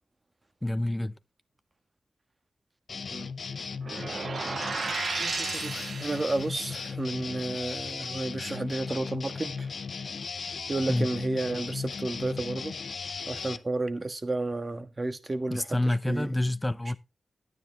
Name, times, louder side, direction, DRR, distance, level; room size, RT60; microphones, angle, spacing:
voice 1, 0.6-1.2 10.9-11.1 15.5-17.0, left 1 dB, 15° left, 0.7 m, -28 dB
sound 1, 2.9-13.6, left 5 dB, 70° left, 0.7 m, -36 dB
sound 2, 3.8-6.6, right 4 dB, 65° right, 0.6 m, -34 dB
voice 2, 5.2-9.7 10.7-12.8 13.3-16.3, right 2 dB, 40° right, 1.5 m, -32 dB
10.0 x 9.6 x 3.4 m
cardioid pair, 45°, 0 cm